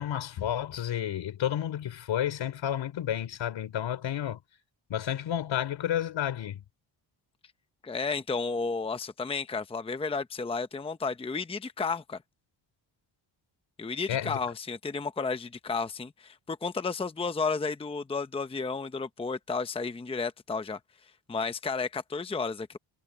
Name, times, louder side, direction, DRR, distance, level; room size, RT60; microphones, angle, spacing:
voice 1, 0.0-4.4 4.9-6.6 14.1-14.4, left 10 dB, 75° left, 4.0 m, -31 dB
voice 2, 7.8-12.2 13.8-20.8 21.3-22.8, left 4 dB, 10° left, 0.8 m, -32 dB
cardioid pair, 140°, 46 cm